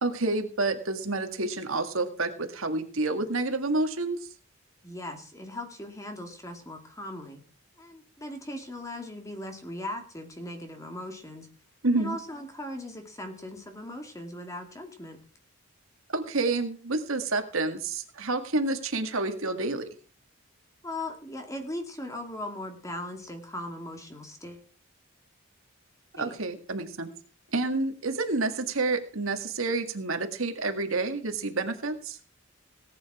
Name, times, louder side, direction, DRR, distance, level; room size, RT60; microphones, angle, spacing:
voice 1, 0.0-4.2 11.8-12.2 16.1-19.9 26.2-27.1 27.5-32.2, right 3 dB, 70° right, 6 dB, 1.9 m, -29 dB
voice 2, 4.8-7.4 7.8-11.5 12.0-15.2 20.8-24.7 26.2-26.3, left 1 dB, 15° left, 4 dB, 2.3 m, -39 dB
18.0 x 9.6 x 4.9 m, 0.40 s
head